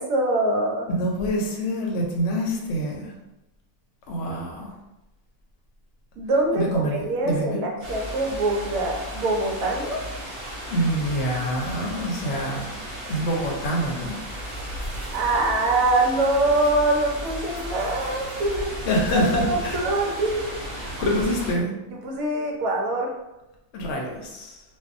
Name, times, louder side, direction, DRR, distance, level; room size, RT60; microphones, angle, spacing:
voice 1, 0.0-0.9 6.2-10.0 15.1-18.7 19.1-20.6 21.9-23.1, right 2 dB, 75° right, 0 dB, 1.0 m, -24 dB
voice 2, 0.9-3.1 4.1-4.7 6.5-7.6 10.7-12.7 13.1-14.2 18.8-19.8 21.0-21.7 23.7-24.6, equal, 65° left, 0 dB, 0.8 m, -26 dB
sound 1, 7.8-21.5, equal, 50° right, 0.9 m, -35 dB
2.6 x 2.3 x 2.5 m, 0.95 s
omnidirectional pair, 1.5 m